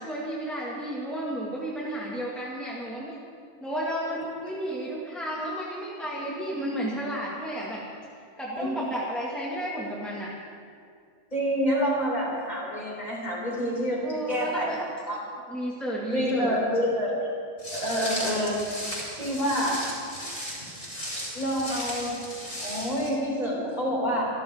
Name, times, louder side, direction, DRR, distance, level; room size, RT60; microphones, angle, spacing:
voice 1, 0.0-3.2 3.6-7.8 8.4-10.3 14.0-14.8 15.5-16.5, right 1 dB, ahead, -6 dB, 1.9 m, -32 dB
voice 2, 11.3-15.2 16.1-17.1 17.7-18.6 19.2-19.8 21.3-22.1 22.6-24.3, equal, 25° left, -4 dB, 4.3 m, -27 dB
Walk footsteps, 17.6-23.1, equal, 45° left, 5.7 m, -35 dB
27.0 x 12.5 x 3.7 m, 2.3 s
omnidirectional pair, 1.6 m